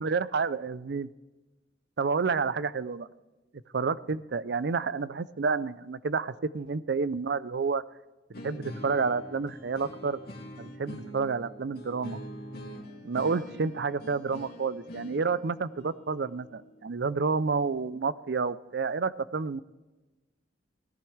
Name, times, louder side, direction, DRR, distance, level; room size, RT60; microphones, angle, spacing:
voice 1, 0.0-1.1 2.0-3.1 3.7-7.8 8.4-10.2 10.6-12.2 13.0-19.6, right 4 dB, 60° right, 17 dB, 0.5 m, -29 dB
sound 1, 8.3-17.3, equal, 55° left, 2.4 m, -44 dB
17.5 x 11.5 x 3.3 m, 1.1 s
head